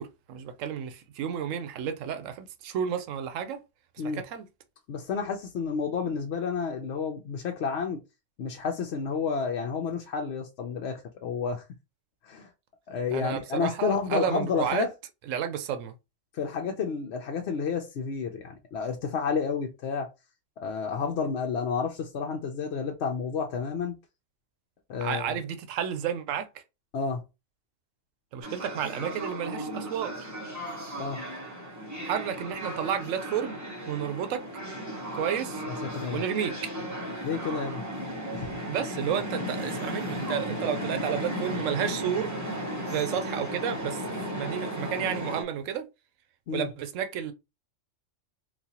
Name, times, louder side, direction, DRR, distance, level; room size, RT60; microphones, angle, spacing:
voice 1, 0.0-3.6 4.0-4.5 13.1-14.8 15.3-16.0 25.0-26.6 28.3-30.3 32.0-33.6 33.9-34.4 35.1-35.6 36.1-36.5 38.7-42.3 42.9-45.9 46.5-47.3, right 8 dB, 80° right, 1.0 m, -31 dB
voice 2, 4.9-8.0 8.4-11.6 12.2-12.5 12.9-14.9 16.3-20.1 20.6-23.9 24.9-25.4 26.9-27.2 31.0-31.2 35.9-36.2 37.2-37.8 38.3-38.5 46.5-46.7, left 5 dB, 65° left, 0.8 m, -30 dB
sound 1, 28.4-45.4, equal, 15° right, 0.8 m, -35 dB
4.1 x 2.3 x 2.8 m
omnidirectional pair, 1.3 m